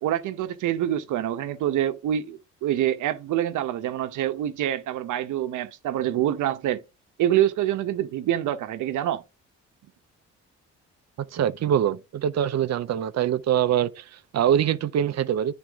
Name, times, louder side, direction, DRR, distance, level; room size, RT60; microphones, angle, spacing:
voice 1, 0.0-6.8 7.2-9.2, right 11 dB, 80° right, 1.0 m, -26 dB
voice 2, 11.3-15.5, right 10 dB, 60° right, 0.7 m, -24 dB
10.0 x 4.5 x 3.6 m
cardioid pair, 90°, 30 cm